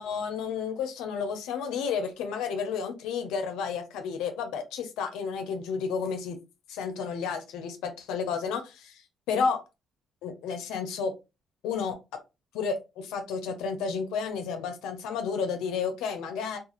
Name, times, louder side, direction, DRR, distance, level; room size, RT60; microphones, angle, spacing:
voice 1, 0.0-6.4 6.7-9.0 9.3-9.6 10.2-11.1 11.6-12.0 12.5-16.6, left 6 dB, 85° left, 6 dB, 0.5 m, -31 dB
2.4 x 2.4 x 2.8 m, 0.26 s
supercardioid pair, 75°, 0 cm